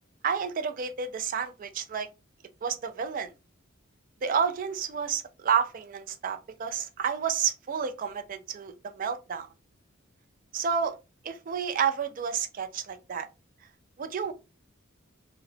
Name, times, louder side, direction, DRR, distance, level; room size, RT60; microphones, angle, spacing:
voice 1, 0.2-2.1 2.6-3.3 4.2-9.5 10.5-11.0 11.2-13.3 14.0-14.3, right 7 dB, 40° right, 0.3 m, -30 dB
2.8 x 2.0 x 2.6 m
head